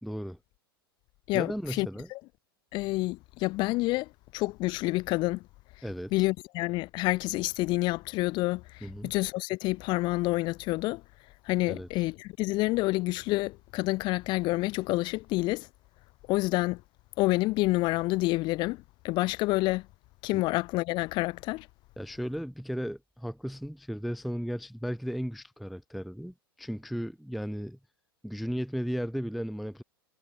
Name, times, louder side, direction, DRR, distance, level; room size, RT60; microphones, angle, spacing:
voice 1, 0.0-0.4 1.3-2.1 5.8-6.1 8.8-9.1 11.7-11.9 20.3-20.4 22.0-27.8 28.2-29.8, equal, ahead, 0.4 m, -35 dB
voice 2, 1.3-2.2 2.7-5.4 6.1-11.0 11.4-15.7 16.3-16.8 17.2-19.9 20.2-21.7, left 21 dB, 35° left, 0.8 m, -28 dB
figure-of-eight pair, 90°, 13 cm